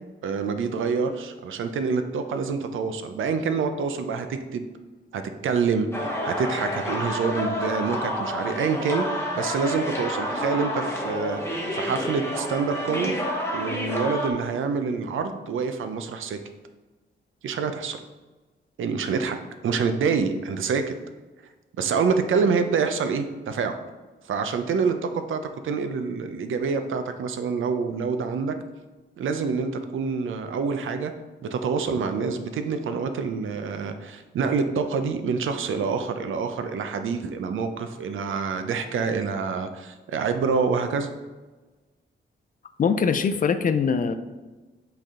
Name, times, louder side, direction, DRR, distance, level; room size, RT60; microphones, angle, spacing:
voice 1, 0.2-4.7 5.1-13.2 13.5-16.4 17.4-18.0 18.8-19.4 19.6-20.9 21.8-23.8 24.3-28.5 29.2-31.1 31.4-41.1, right 5 dB, 90° right, 8 dB, 0.6 m, -26 dB
sound 1, 5.9-14.3, equal, 15° left, 1.0 m, -29 dB
voice 2, 42.8-44.2, left 6 dB, 45° left, 10 dB, 0.4 m, -22 dB
7.8 x 3.4 x 3.7 m, 1.2 s
wide cardioid pair, 130°, 20 cm